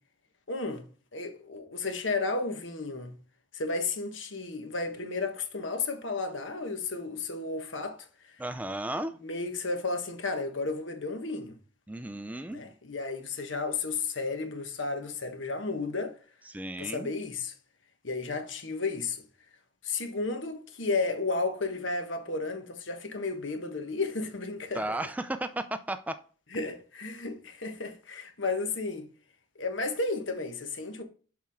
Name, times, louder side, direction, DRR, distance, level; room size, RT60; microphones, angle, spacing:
voice 1, 0.5-0.8 1.1-3.1 3.5-8.1 9.1-11.5 12.4-16.2 16.8-17.5 18.0-19.2 19.8-24.8 26.5-29.1 29.6-31.0, left 3 dB, 70° left, 1.3 m, -33 dB
voice 2, 8.4-9.2 11.9-12.6 16.5-17.1 24.7-26.2, right 1 dB, 10° right, 0.3 m, -34 dB
7.3 x 5.8 x 3.6 m
head